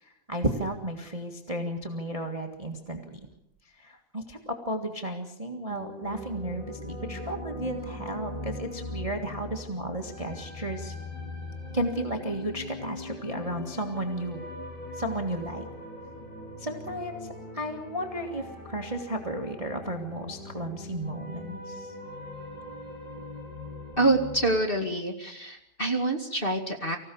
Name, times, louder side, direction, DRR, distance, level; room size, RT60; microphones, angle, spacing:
voice 1, 0.0-3.2 3.8-10.9 11.7-14.4 14.9-15.6 16.6-17.3 17.5-21.9, right 1 dB, 40° right, 4 dB, 0.4 m, -33 dB
sound 1, 5.7-24.6, left 2 dB, 50° left, 7.6 m, -40 dB
voice 2, 24.0-27.0, right 2 dB, 20° left, 3 dB, 1.5 m, -26 dB
25.0 x 16.5 x 7.0 m, 0.77 s
omnidirectional pair, 4.0 m